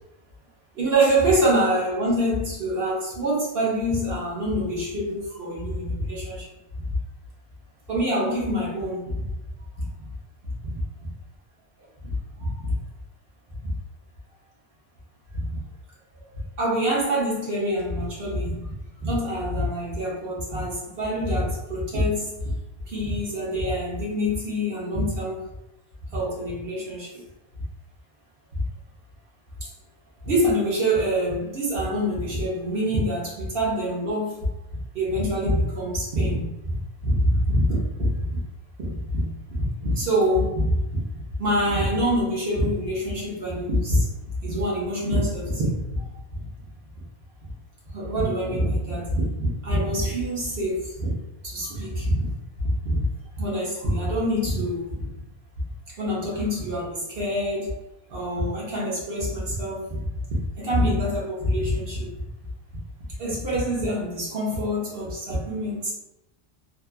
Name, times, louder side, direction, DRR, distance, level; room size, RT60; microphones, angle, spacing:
voice 1, 0.7-6.5 6.9-7.0 7.9-9.3 9.8-9.9 10.4-10.8 12.0-12.7 13.6-13.7 15.3-15.6 16.1-16.2 16.6-22.5 22.9-25.4 26.1-27.2 28.5-28.6 29.6-29.7 30.2-34.4 34.9-38.4 38.8-41.0 41.4-44.1 44.4-46.4 47.9-51.1 51.4-52.3 52.6-53.0 53.4-55.1 55.9-57.7 58.1-60.1 60.6-62.2 63.2-65.9, equal, 70° right, -5 dB, 1.1 m, -25 dB
2.8 x 2.3 x 2.2 m, 0.93 s
omnidirectional pair, 1.1 m